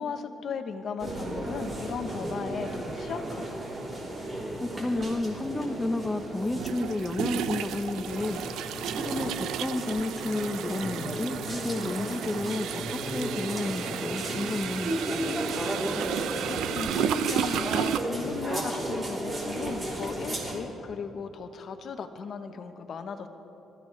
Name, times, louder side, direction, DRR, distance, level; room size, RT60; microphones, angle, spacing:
voice 1, 0.0-3.6 16.5-23.3, left 6 dB, 60° left, 7 dB, 1.0 m, -36 dB
sound 1, 1.0-20.6, right 1 dB, 30° right, 3.4 m, -34 dB
voice 2, 4.6-14.9, left 2 dB, 20° left, 6 dB, 0.9 m, -31 dB
sound 2, 5.0-5.1 6.5-18.0, right 10 dB, 85° right, 0.5 m, -33 dB
26.0 x 14.5 x 3.3 m, 3.0 s
cardioid pair, 90°, 0 cm